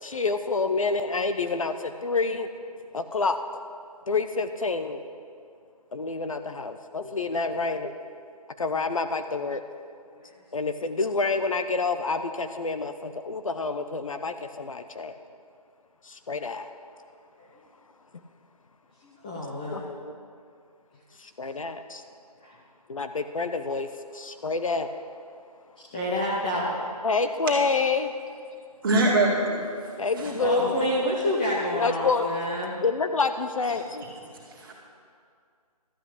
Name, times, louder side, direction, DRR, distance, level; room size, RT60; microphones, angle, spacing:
voice 1, 0.0-2.5 2.9-3.4 4.1-5.0 5.9-7.9 8.6-9.6 10.5-15.1 16.0-16.7 19.7-20.1 21.2-22.0 22.9-24.9 27.0-28.1 30.0-31.3 31.7-32.3 32.8-34.0, left 4 dB, 55° left, 8 dB, 0.7 m, -28 dB
voice 2, 7.0-7.5 10.1-10.4 17.4-17.6 19.0-19.8 22.4-22.6 25.8-26.8 30.4-32.7, left 1 dB, 15° left, -5 dB, 0.7 m, -29 dB
voice 3, 28.8-29.9 30.2-30.6 34.3-34.7, right 2 dB, 35° right, -3 dB, 2.2 m, -25 dB
12.5 x 5.9 x 8.2 m, 2.3 s
figure-of-eight pair, 155°, 20 cm